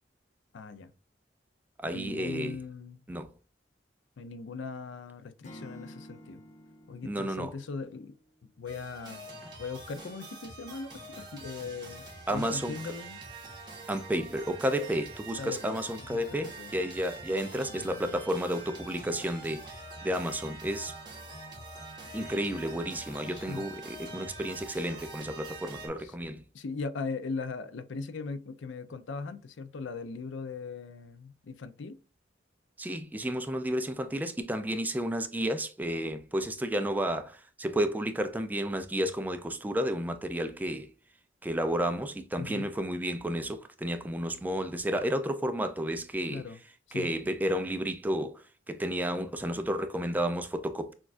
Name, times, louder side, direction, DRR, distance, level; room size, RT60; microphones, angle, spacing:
voice 1, 0.5-0.9 1.9-3.0 4.2-6.4 6.9-8.1 8.6-9.3 9.6-13.2 15.4-16.7 17.6-18.1 23.3-23.7 26.0-26.1 26.5-32.0 42.4-42.7 46.3-46.6 46.9-47.1, left 4 dB, 85° left, 0.5 m, -39 dB
voice 2, 1.8-2.6 3.1-3.3 7.1-7.5 12.3-12.7 13.9-19.6 20.0-20.9 22.1-26.4 32.8-40.9 41.4-46.4 46.9-48.3 48.7-50.9, equal, 10° right, 0.3 m, -31 dB
Acoustic guitar / Strum, 5.4-8.5, left 1 dB, 40° left, 0.7 m, -51 dB
sound 1, 8.7-25.9, right 2 dB, 25° right, 1.2 m, -45 dB
6.1 x 2.3 x 2.5 m
head